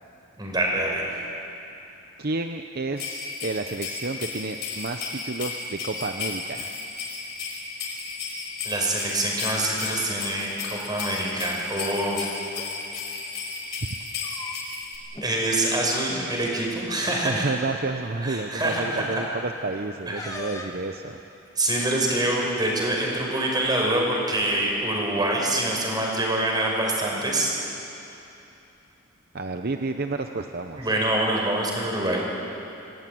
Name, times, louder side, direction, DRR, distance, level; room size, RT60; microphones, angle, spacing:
voice 1, 0.4-1.1 8.6-12.3 15.2-17.5 18.2-19.2 20.1-20.4 21.6-27.5 30.8-32.2, right 1 dB, 20° right, -1 dB, 5.5 m, -25 dB
voice 2, 2.2-6.7 17.2-21.2 29.3-30.9, right 3 dB, 50° right, 5 dB, 0.8 m, -30 dB
sound 1, 3.0-15.0, left 4 dB, 55° left, 5.4 m, -34 dB
sound 2, 12.5-12.7 13.9-14.8 15.1-15.3 15.7-15.9 16.9-17.0 17.6-17.9 20.1-20.9, left 2 dB, 20° left, 1.7 m, -40 dB
26.5 x 18.0 x 9.4 m, 2.9 s
head